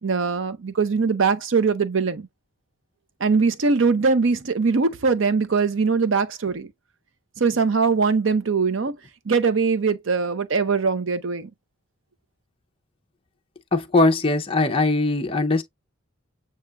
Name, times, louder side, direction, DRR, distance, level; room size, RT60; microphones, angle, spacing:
voice 1, 0.0-2.3 3.2-6.7 7.4-8.9 9.3-11.5, right 4 dB, 60° right, 0.6 m, -21 dB
voice 2, 13.7-15.6, left 2 dB, 25° left, 0.5 m, -20 dB
8.1 x 2.8 x 2.3 m
head